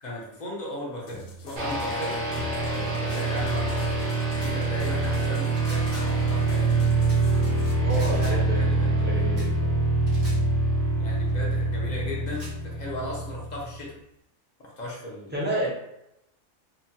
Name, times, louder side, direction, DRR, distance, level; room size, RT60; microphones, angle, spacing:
voice 1, 0.0-2.2 2.6-3.9 4.4-6.9 7.9-9.1 11.0-13.9 14.6-15.5, left 1 dB, 45° left, -3 dB, 0.6 m, -37 dB
sound 1, 1.1-7.7, left 1 dB, 75° left, 0.9 m, -46 dB
sound 2, 1.6-13.8, right 2 dB, 50° right, 0.6 m, -25 dB
sound 3, 3.1-3.3 4.4-4.6 5.4-6.2 7.1-7.3 7.9-8.4 9.4-9.5 10.1-10.4 11.3-11.4 12.3-12.6, right 1 dB, 75° right, 1.4 m, -45 dB
voice 2, 7.8-8.6 9.0-9.6 15.3-15.7, right 1 dB, 15° right, -6 dB, 0.4 m, -29 dB
2.9 x 2.1 x 2.7 m, 0.82 s
omnidirectional pair, 1.4 m